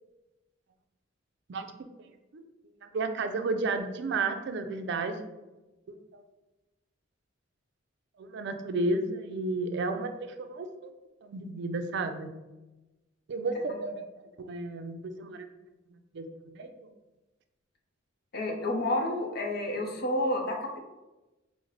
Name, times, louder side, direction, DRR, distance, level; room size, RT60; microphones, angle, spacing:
voice 1, 2.8-5.2 5.9-6.2 8.2-10.9 11.2-12.3 13.3-14.0 14.4-15.5 16.1-16.7, right 3 dB, 65° right, 6 dB, 0.4 m, -32 dB
voice 2, 18.3-20.8, left 1 dB, 55° left, 2 dB, 0.6 m, -30 dB
4.9 x 2.0 x 3.1 m, 1.1 s
head